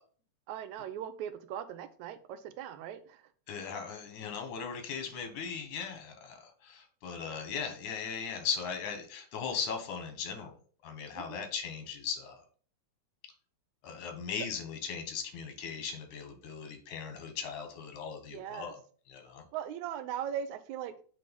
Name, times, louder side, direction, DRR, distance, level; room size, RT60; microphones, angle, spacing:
voice 1, 0.5-3.2 11.1-11.4 18.3-18.7 19.5-20.9, right 9 dB, 80° right, 11 dB, 2.1 m, -39 dB
voice 2, 3.5-10.5 10.8-12.4 13.8-18.8 19.1-19.4, left 6 dB, 90° left, 6 dB, 2.7 m, -38 dB
7.7 x 3.5 x 5.3 m, 0.44 s
omnidirectional pair, 3.3 m